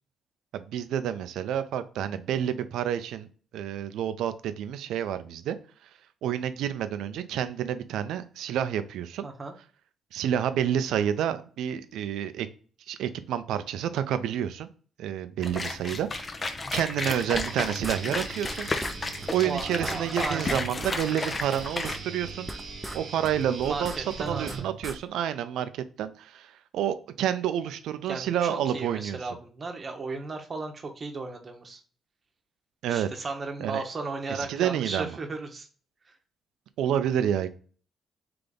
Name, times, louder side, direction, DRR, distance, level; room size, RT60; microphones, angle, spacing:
voice 1, 0.5-3.3 3.5-5.6 6.2-9.2 10.1-12.5 12.9-14.7 15.0-16.4 16.7-18.7 19.3-22.5 22.9-23.9 24.2-29.2 32.8-33.1 33.6-33.8 34.3-35.2 36.8-37.5, right 10 dB, 85° right, 0.5 m, -29 dB
voice 2, 9.2-9.5 19.4-20.8 23.6-24.7 28.1-31.8 32.9-35.7, right 3 dB, 35° right, 1.0 m, -35 dB
sound 1, 15.4-22.0, left 3 dB, 30° left, 0.7 m, -33 dB
Guitar, 17.0-25.1, right 5 dB, 60° right, 1.0 m, -41 dB
sound 2, 17.3-18.5 18.8-19.0 19.2-19.3 19.6-21.0 21.3-23.0 23.2-25.0, right 1 dB, 5° right, 0.5 m, -38 dB
3.4 x 3.3 x 3.8 m
cardioid pair, 90°, 0 cm